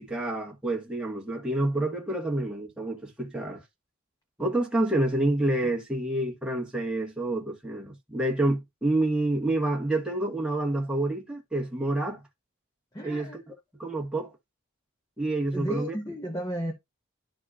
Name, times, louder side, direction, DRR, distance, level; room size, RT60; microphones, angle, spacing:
voice 1, 0.0-3.6 4.4-12.2 13.0-13.5 13.8-14.3 15.2-15.9, right 2 dB, 5° right, 1.5 m, -28 dB
voice 2, 12.9-13.4 15.5-16.7, equal, 15° left, 1.0 m, -33 dB
12.5 x 4.2 x 2.5 m
head